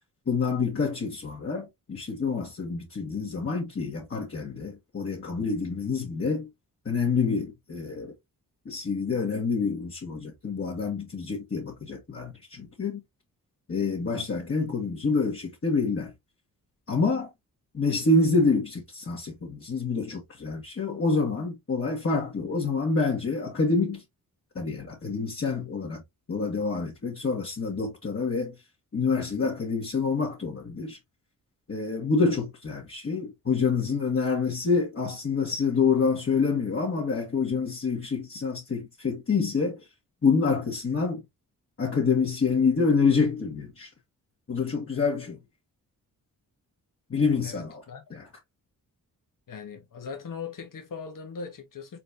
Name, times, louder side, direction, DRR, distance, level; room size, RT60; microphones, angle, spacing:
voice 1, 0.3-6.5 6.9-8.1 8.7-13.0 13.7-16.1 16.9-17.3 17.7-24.0 24.6-26.0 26.3-28.5 28.9-31.0 31.7-39.8 40.2-41.2 41.8-43.9 44.5-45.4 47.1-47.8 48.1-48.2, left 4 dB, 40° left, 1.7 m, -27 dB
voice 2, 47.4-48.2 49.5-52.0, left 5 dB, 65° left, 1.5 m, -40 dB
4.3 x 4.0 x 2.7 m
cardioid pair, 80°, 35 cm